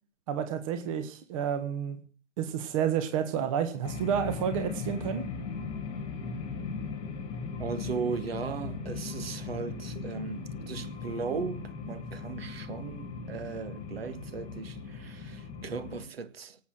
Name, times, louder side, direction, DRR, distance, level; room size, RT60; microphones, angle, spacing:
voice 1, 0.3-2.0 2.4-5.3, right 8 dB, 25° right, 1.5 m, -30 dB
sound 1, 3.8-16.0, left 4 dB, 15° left, 2.2 m, -38 dB
voice 2, 7.6-16.6, right 5 dB, 50° right, 1.9 m, -37 dB
18.0 x 8.0 x 7.7 m
figure-of-eight pair, 140°, 38 cm